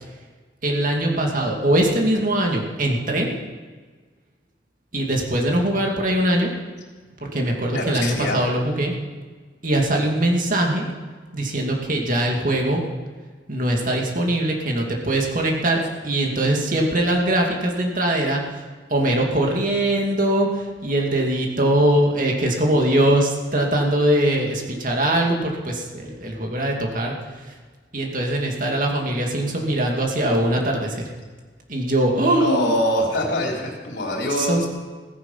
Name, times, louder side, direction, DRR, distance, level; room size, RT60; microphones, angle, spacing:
voice 1, 0.6-3.3 4.9-6.5 7.2-8.9 9.6-10.9 11.3-12.8 13.5-27.6 27.9-31.1 31.7-32.8 34.4-34.7, right 1 dB, 45° right, 0 dB, 2.5 m, -22 dB
voice 2, 7.7-8.4 32.4-34.7, left 1 dB, 70° left, 0 dB, 3.4 m, -24 dB
16.5 x 15.5 x 5.7 m, 1.4 s
head